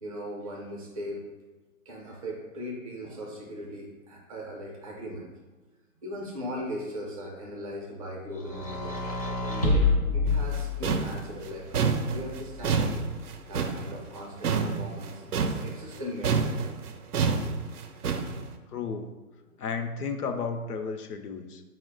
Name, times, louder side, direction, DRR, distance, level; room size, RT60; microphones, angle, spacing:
voice 1, 0.0-1.2 1.9-5.3 6.0-9.0 9.4-9.9 10.1-13.0 13.5-16.6 17.6-17.7, equal, 25° right, -3 dB, 0.5 m, -38 dB
sound 1, 8.4-11.2 12.1-13.0, left 3 dB, 25° left, 0.4 m, -28 dB
sound 2, 10.3-16.0 16.2-18.4, right 5 dB, 80° right, 0.6 m, -28 dB
voice 2, 18.7-19.1 19.6-21.6, left 5 dB, 85° left, 7 dB, 0.6 m, -33 dB
4.4 x 2.1 x 3.7 m, 1.2 s
figure-of-eight pair, 130°, 45 cm